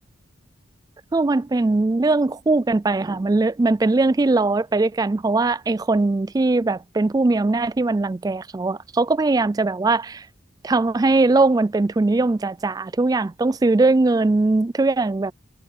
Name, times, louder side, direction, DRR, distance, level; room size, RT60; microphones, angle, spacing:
voice 1, 1.1-10.2 10.6-15.3, right 3 dB, 20° right, 0.3 m, -20 dB
head